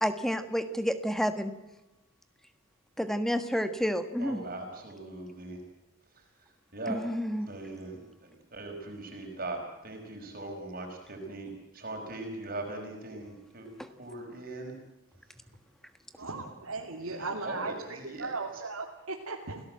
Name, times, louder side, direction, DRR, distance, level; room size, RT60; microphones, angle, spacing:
voice 1, 0.0-1.5 3.0-4.4 6.9-7.5 13.8-13.9, equal, ahead, 9 dB, 1.4 m, -30 dB
voice 2, 4.2-5.6 6.1-7.0 7.4-13.7 14.0-14.7 17.0-18.6, right 2 dB, 40° right, 2 dB, 5.2 m, -40 dB
voice 3, 16.2-19.6, right 3 dB, 80° right, -1 dB, 2.8 m, -37 dB
28.5 x 17.5 x 7.8 m, 1.0 s
head